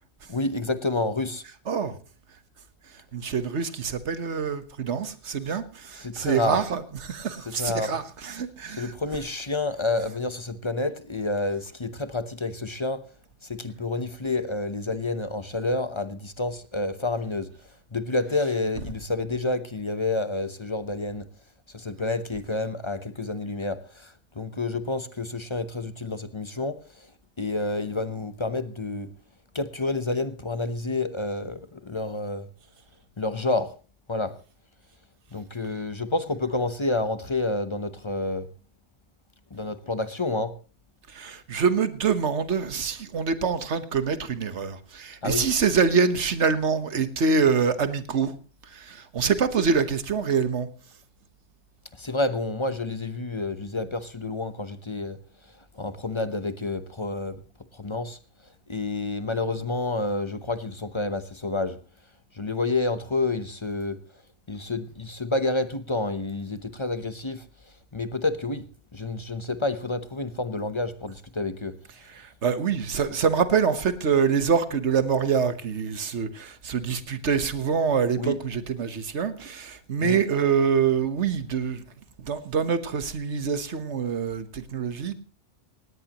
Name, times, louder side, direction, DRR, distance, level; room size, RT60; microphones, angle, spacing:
voice 1, 0.3-1.4 6.0-6.6 7.5-8.0 8.7-13.0 13.5-17.5 17.9-21.3 21.7-26.8 27.4-29.1 29.5-32.5 33.2-33.7 34.1-34.3 35.3-38.5 39.5-40.5 45.2-45.5 52.0-55.2 55.7-57.4 57.7-58.2 58.7-61.8 62.4-64.0 64.5-67.4 67.9-68.6 68.9-71.8 78.2-78.4 80.0-80.2, left 2 dB, 25° left, 0.9 m, -29 dB
voice 2, 3.1-8.9 41.1-48.4 48.7-50.7 72.1-81.8 82.2-85.1, right 6 dB, 70° right, 1.5 m, -25 dB
18.0 x 17.5 x 3.0 m
omnidirectional pair, 1.2 m